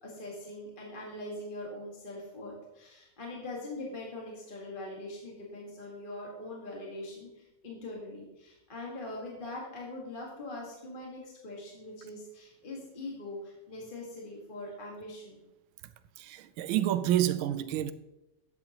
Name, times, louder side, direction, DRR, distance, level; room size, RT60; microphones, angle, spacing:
voice 1, 0.0-15.4, left 2 dB, 25° left, 1.6 m, -42 dB
voice 2, 16.2-17.9, right 12 dB, 80° right, 1.4 m, -28 dB
12.0 x 9.0 x 2.9 m
omnidirectional pair, 2.3 m